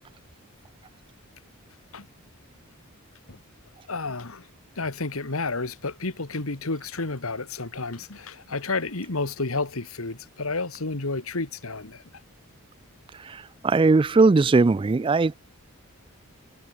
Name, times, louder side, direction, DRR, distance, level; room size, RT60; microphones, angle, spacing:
voice 1, 3.9-4.5 4.8-12.0, left 3 dB, 80° left, 1.9 m, -31 dB
voice 2, 13.3-15.3, right 3 dB, 25° right, 0.3 m, -19 dB
head